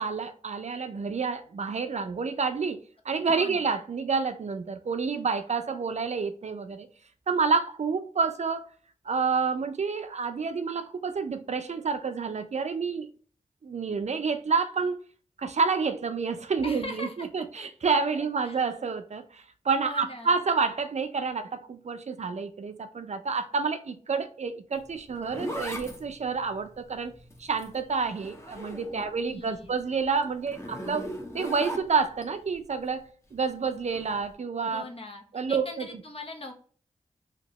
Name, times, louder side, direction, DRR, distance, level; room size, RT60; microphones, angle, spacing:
voice 1, 0.0-6.9 7.3-8.7 9.0-13.1 13.6-15.0 15.4-27.1 27.4-31.1 31.3-33.0 33.3-34.8 35.3-35.9, right 5 dB, 60° right, 0.5 m, -29 dB
voice 2, 3.3-3.7 16.6-17.4 18.4-18.6 19.8-20.4 28.9-29.7 34.6-36.5, left 2 dB, 45° left, 0.9 m, -41 dB
Zipper (clothing), 24.8-29.2 29.6-32.3 33.9-34.2, equal, 20° left, 0.9 m, -39 dB
3.0 x 2.8 x 2.8 m
cardioid pair, 45°, 13 cm